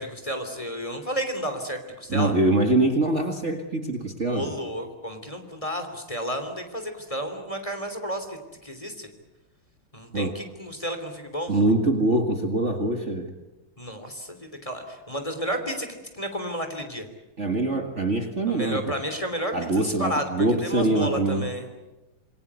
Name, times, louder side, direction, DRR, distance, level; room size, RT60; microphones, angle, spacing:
voice 1, 0.0-2.3 4.2-8.4 8.6-9.1 9.9-11.5 13.8-15.9 16.1-17.1 18.5-19.5 19.8-20.3 20.6-21.7, equal, 15° left, 6 dB, 3.2 m, -32 dB
voice 2, 2.1-4.6 10.1-10.4 11.5-13.3 17.4-18.9 19.5-21.5, right 2 dB, 35° right, 5 dB, 2.2 m, -24 dB
27.5 x 22.0 x 8.4 m, 1.1 s
omnidirectional pair, 2.2 m